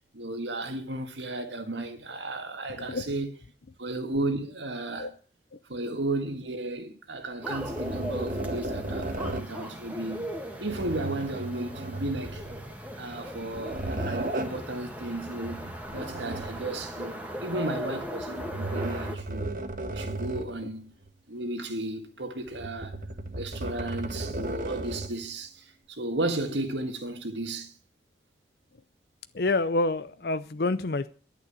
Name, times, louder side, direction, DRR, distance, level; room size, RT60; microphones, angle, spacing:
voice 1, 0.1-3.3 3.8-5.1 5.7-12.4 13.0-15.7 15.9-19.5 19.9-20.9 21.3-23.0 23.4-27.7, right 2 dB, 80° right, 2.0 m, -34 dB
voice 2, 2.7-3.1 5.0-5.1 5.5-5.6 29.3-31.1, left 2 dB, 55° left, 0.6 m, -28 dB
sound 1, 7.4-19.2, equal, 10° right, 1.9 m, -38 dB
sound 2, 7.5-9.6 10.6-12.8 13.3-14.7 15.4-16.9 18.2-20.7 21.0-21.1 22.5-25.3, right 2 dB, 45° right, 1.3 m, -35 dB
11.0 x 9.4 x 8.3 m
head